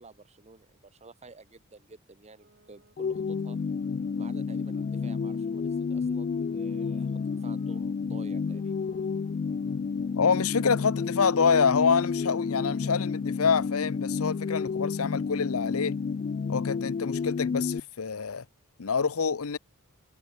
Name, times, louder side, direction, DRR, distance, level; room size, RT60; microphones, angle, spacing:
voice 1, 0.0-3.6 4.2-8.7, right 3 dB, 30° right, 1.2 m, -51 dB
sound 1, 2.2-7.8 8.4-14.0, right 2 dB, 50° right, 4.8 m, -63 dB
sound 2, 3.0-17.8, left 5 dB, 40° left, 0.3 m, -30 dB
voice 2, 10.2-16.0 16.5-18.4 18.8-19.6, left 5 dB, 80° left, 0.8 m, -26 dB
head